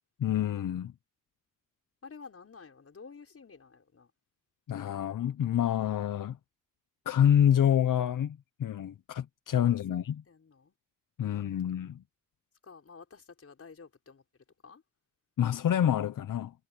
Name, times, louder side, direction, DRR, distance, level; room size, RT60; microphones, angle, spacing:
voice 1, 0.2-0.9 4.7-6.4 7.1-10.2 11.2-12.0 15.4-16.5, left 10 dB, 80° left, 0.8 m, -27 dB
voice 2, 2.0-4.1 9.6-10.0 10.3-10.8 11.2-12.0 12.6-14.2 14.6-14.8, left 5 dB, 45° left, 6.0 m, -51 dB
wide cardioid pair, 135°, 32 cm